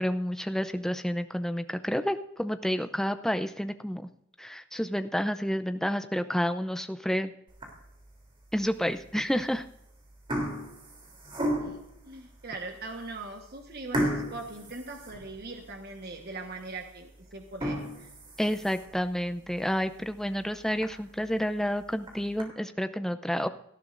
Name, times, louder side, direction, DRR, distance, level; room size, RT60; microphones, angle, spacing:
voice 1, 0.0-4.1 4.4-7.3 8.5-9.7 18.4-23.5, equal, ahead, 9 dB, 0.6 m, -30 dB
sound 1, 7.5-8.0 8.6-8.7 9.6-9.8 10.1-11.9 12.6-12.7 13.0-13.1 13.9-15.7 16.1-16.2 16.7-16.8 17.4-19.0 19.5-19.6 20.0-20.1 20.4-20.5 20.8-20.9 21.8-22.4, equal, 25° right, 3.3 m, -33 dB
voice 2, 12.0-18.1, right 3 dB, 50° right, 3 dB, 1.3 m, -41 dB
18.0 x 13.0 x 2.6 m, 0.79 s
head